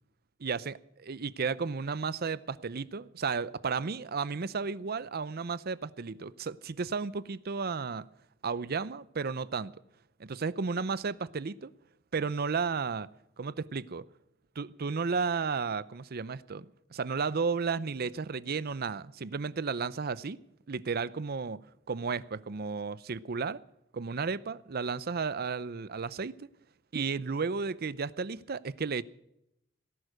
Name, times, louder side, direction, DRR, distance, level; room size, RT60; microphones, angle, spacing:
voice 1, 0.4-0.8 1.1-8.1 8.4-9.7 10.2-11.7 12.1-13.1 13.4-14.1 14.6-20.4 20.7-21.6 21.9-23.6 23.9-26.5 26.9-29.0, right 5 dB, 50° right, 0.6 m, -33 dB
18.5 x 11.0 x 6.4 m
head